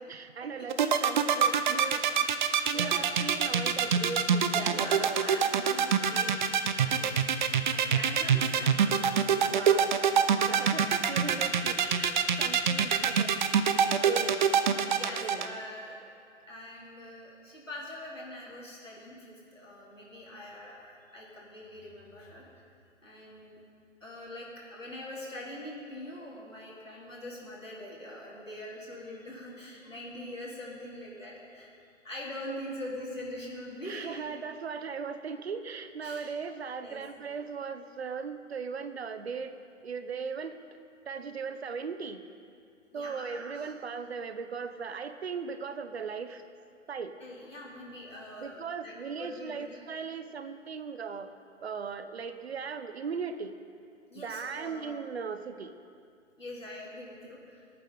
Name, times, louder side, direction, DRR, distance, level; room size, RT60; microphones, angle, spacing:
voice 1, 0.0-5.3 9.5-9.9 10.5-13.6 14.1-14.5 14.9-15.6 33.8-39.5 39.8-40.6 41.1-42.2 42.9-46.4 46.9-47.2 48.4-51.3 51.6-53.6 54.2-55.7, right 5 dB, 55° right, 10 dB, 1.0 m, -38 dB
sound 1, 0.7-15.5, right 7 dB, 40° right, 0.7 m, -24 dB
voice 2, 4.5-6.4 6.8-9.0 10.4-10.7 11.2-11.5 12.0-12.6 14.9-16.1 16.5-22.5 23.0-23.6 24.0-31.7 32.0-34.2 36.0-36.3 36.8-37.0 42.9-43.7 47.2-49.8 54.1-55.0 56.4-57.6, left 1 dB, 85° left, -5 dB, 4.2 m, -43 dB
24.0 x 9.2 x 3.9 m, 2.3 s
figure-of-eight pair, 125°, 37 cm